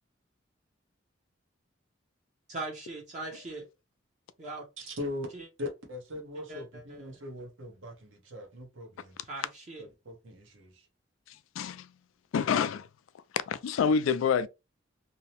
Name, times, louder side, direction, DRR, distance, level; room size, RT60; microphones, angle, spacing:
voice 1, 2.5-3.6 4.4-4.6 5.3-5.5 6.5-7.2 9.2-9.9, right 2 dB, 35° right, 0.6 m, -40 dB
voice 2, 4.9-5.3 5.6-9.2 9.8-10.9, left 2 dB, 80° right, 0.9 m, -40 dB
voice 3, 11.6-11.9 12.3-12.9 13.5-14.5, left 6 dB, 85° left, 0.3 m, -27 dB
2.7 x 2.0 x 2.8 m
head